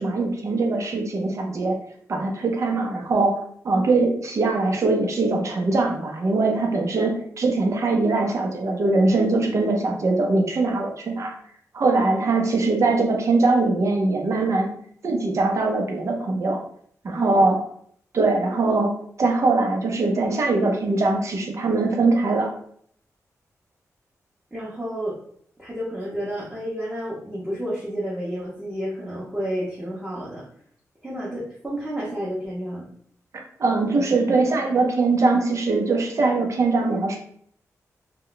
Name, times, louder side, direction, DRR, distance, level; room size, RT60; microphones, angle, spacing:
voice 1, 0.0-1.8 2.1-11.3 11.7-14.7 15.0-16.6 17.0-17.6 18.1-22.5 33.6-37.2, right 3 dB, 55° right, 2 dB, 0.6 m, -22 dB
voice 2, 17.1-17.5 24.5-25.1 25.6-30.4 31.0-32.8, equal, 15° right, -8 dB, 0.8 m, -30 dB
2.3 x 2.1 x 3.8 m, 0.62 s
wide cardioid pair, 100°, 6 cm